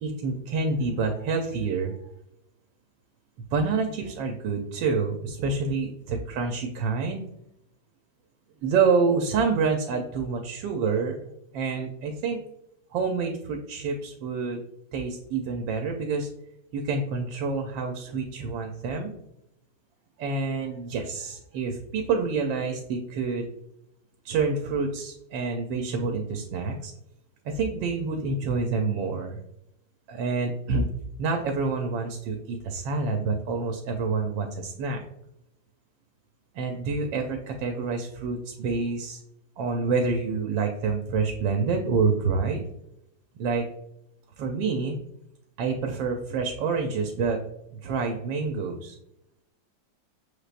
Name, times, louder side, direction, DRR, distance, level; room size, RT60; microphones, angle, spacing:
voice 1, 0.0-1.9 3.5-7.2 8.6-12.4 12.9-14.6 14.9-16.3 16.7-19.1 20.2-23.5 24.2-26.9 27.4-29.4 30.1-30.9 31.2-35.0 36.5-39.2 39.6-42.7 43.4-43.7 44.4-45.0 45.6-47.4 47.7-49.0, right 4 dB, 90° right, 4 dB, 1.3 m, -27 dB
6.5 x 3.3 x 2.4 m, 0.81 s
omnidirectional pair, 2.0 m